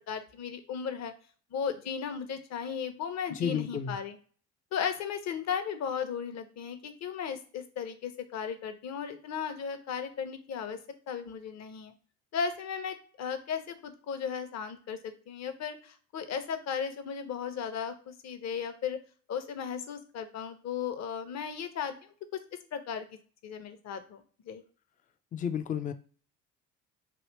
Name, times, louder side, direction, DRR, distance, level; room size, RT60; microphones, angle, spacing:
voice 1, 0.1-1.1 1.5-4.1 4.7-10.8 11.1-11.9 12.3-19.0 19.3-22.0 22.3-22.4 22.7-23.1 23.4-24.6, left 7 dB, 40° left, 0.8 m, -36 dB
voice 2, 3.3-4.0 25.3-25.9, left 8 dB, 20° left, 0.4 m, -32 dB
3.1 x 2.7 x 3.1 m
figure-of-eight pair, 55°, 41 cm